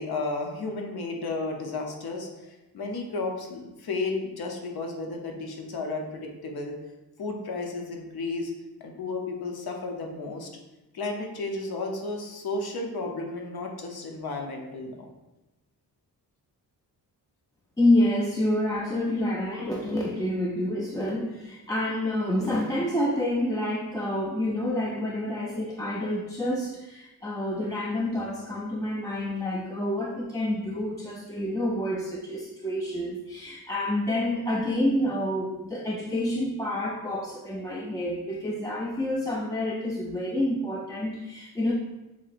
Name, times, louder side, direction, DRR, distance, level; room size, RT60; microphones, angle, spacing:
voice 1, 0.0-6.7 7.2-8.5 8.8-10.5 10.9-15.1, left 3 dB, 75° left, 1 dB, 0.9 m, -33 dB
voice 2, 17.8-41.7, left 1 dB, 10° left, -3 dB, 0.3 m, -28 dB
7.3 x 2.9 x 2.5 m, 1.0 s
wide cardioid pair, 140°, 38 cm